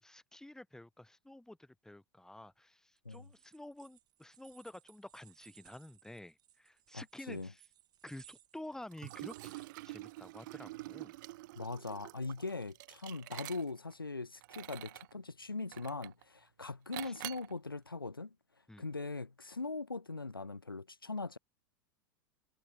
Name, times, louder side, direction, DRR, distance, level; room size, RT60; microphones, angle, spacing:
voice 1, 0.0-7.6 8.0-11.1 17.0-17.1 18.7-18.8, left 1 dB, 5° left, 4.6 m, -51 dB
sound 1, 3.0-10.4, right 12 dB, 35° right, 4.2 m, -63 dB
voice 2, 6.9-7.5 11.6-18.3 18.8-21.4, left 3 dB, 90° left, 2.6 m, -41 dB
Liquid, 8.9-13.9 14.4-15.1 15.7-16.2 16.9-17.5, right 19 dB, 60° right, 4.9 m, -47 dB
figure-of-eight pair, 80°, 11 cm